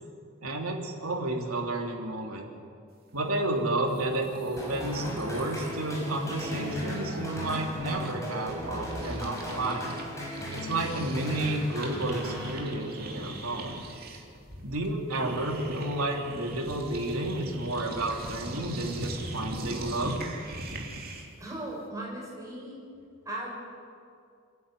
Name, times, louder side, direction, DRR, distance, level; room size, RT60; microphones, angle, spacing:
voice 1, 0.4-2.5 3.1-10.0 10.5-13.8 14.6-20.2, right 2 dB, 85° right, 1 dB, 3.1 m, -31 dB
sound 1, 3.6-3.7 3.8-10.0 10.3-21.4, right 1 dB, 45° right, 2.8 m, -41 dB
sound 2, 4.6-13.1, left 1 dB, 15° left, 5.3 m, -37 dB
voice 2, 21.4-22.8 23.2-23.6, right 1 dB, 15° right, -4 dB, 6.4 m, -37 dB
27.5 x 11.0 x 9.3 m, 2.3 s
head